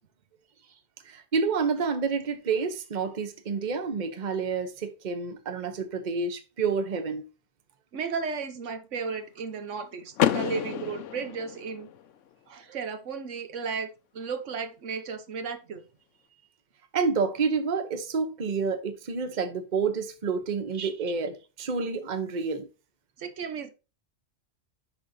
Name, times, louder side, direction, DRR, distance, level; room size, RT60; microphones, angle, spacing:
voice 1, 1.0-7.3 16.9-22.7, right 5 dB, 40° right, 1.0 m, -29 dB
voice 2, 7.9-11.9 12.5-15.8 20.7-20.9 23.2-23.7, right 5 dB, 80° right, 1.3 m, -34 dB
Car / Door, 10.2-12.1, left 10 dB, 85° left, 1.0 m, -29 dB
11.0 x 3.8 x 2.7 m
omnidirectional pair, 1.2 m